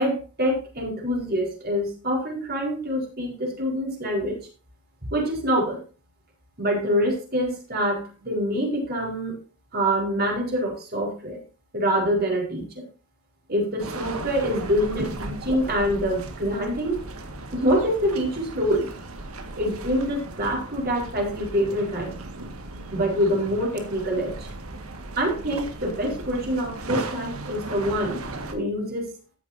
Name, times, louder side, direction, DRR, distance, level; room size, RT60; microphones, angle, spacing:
voice 1, 0.0-4.4 5.1-5.8 6.6-9.4 9.7-11.4 11.7-12.8 13.5-17.0 17.5-18.9 19.5-22.1 22.9-24.5 25.2-28.2 28.5-29.1, equal, 45° right, 0 dB, 4.7 m, -25 dB
sound 1, 13.8-28.5, right 2 dB, 85° right, 1.9 m, -36 dB
14.0 x 9.5 x 2.7 m, 0.34 s
head